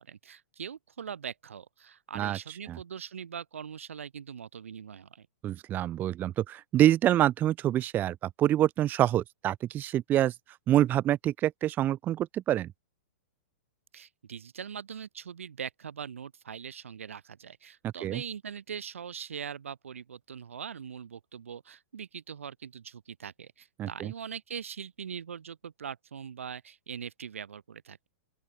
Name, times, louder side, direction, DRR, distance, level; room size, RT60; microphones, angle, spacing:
voice 1, 0.0-5.3 13.9-28.1, right 7 dB, 90° right, 2.5 m, -41 dB
voice 2, 5.4-10.3 10.7-12.7 18.0-18.2 23.8-24.1, right 12 dB, 25° right, 0.8 m, -26 dB
open air
hypercardioid pair, 130°, 7 cm